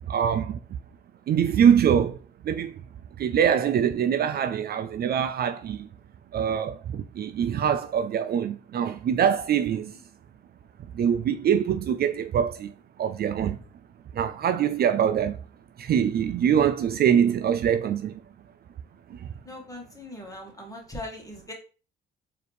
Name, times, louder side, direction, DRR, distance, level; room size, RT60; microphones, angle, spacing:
voice 1, 0.1-0.6 1.3-2.2 2.4-2.8 3.2-5.9 6.3-9.9 10.9-12.7 13.0-13.6 14.1-15.4 15.8-18.2 19.1-19.3, right 8 dB, 50° right, 0.4 m, -24 dB
voice 2, 19.5-21.5, left 1 dB, 15° left, 1.6 m, -40 dB
4.1 x 2.8 x 3.4 m
cardioid pair, 90°, 20 cm